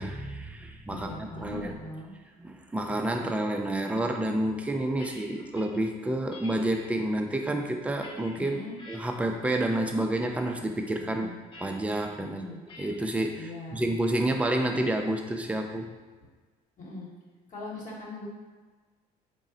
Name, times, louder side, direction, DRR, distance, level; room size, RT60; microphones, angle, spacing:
voice 1, 0.0-1.1 1.4-1.7 2.4-8.6 8.9-11.3 11.6-12.4 12.8-13.5 13.7-16.0, right 1 dB, 10° right, 3 dB, 0.3 m, -29 dB
voice 2, 0.9-2.1 8.4-8.8 11.0-11.4 12.2-12.6 13.3-13.8 16.8-17.1 17.5-18.3, left 2 dB, 50° left, -4 dB, 1.0 m, -40 dB
sound 1, 4.6-5.8 6.3-6.8 7.5-9.0 9.4-9.8 10.2-10.5 11.5-12.1 12.7-13.1, left 2 dB, 30° left, 0.7 m, -49 dB
3.7 x 2.0 x 3.8 m, 1.4 s
cardioid pair, 110°, 17 cm